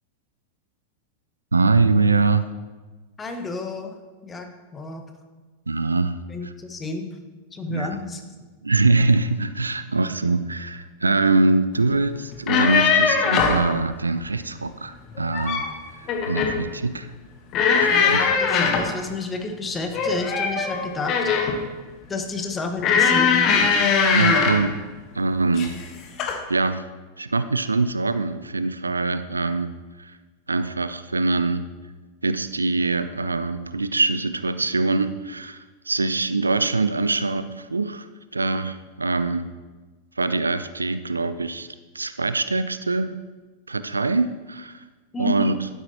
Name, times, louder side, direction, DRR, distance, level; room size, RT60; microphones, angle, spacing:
voice 1, 1.5-2.5 5.7-6.2 7.7-7.9 8.6-15.6 16.0-17.1 17.8-18.3 24.1-24.8 25.1-25.8 26.5-26.9 27.2-29.7 30.0-30.1 30.5-31.7 32.2-38.1 38.3-39.5 40.2-41.7 41.9-43.2 43.7-44.8 45.2-45.6, right 3 dB, 80° right, 12 dB, 0.4 m, -23 dB
voice 2, 3.2-4.5 4.7-5.0 6.3-7.2 7.5-8.2 17.9-21.6 22.1-23.8 45.1-45.5, left 3 dB, 20° left, 5 dB, 1.2 m, -31 dB
sound 1, 12.3-13.7 15.1-15.7 16.1-16.6 17.5-18.9 19.9-21.6 22.8-24.7 25.5-25.8 26.2-26.4, left 5 dB, 35° left, 1.1 m, -20 dB
11.5 x 9.7 x 2.8 m, 1.3 s
figure-of-eight pair, 90°, 0 cm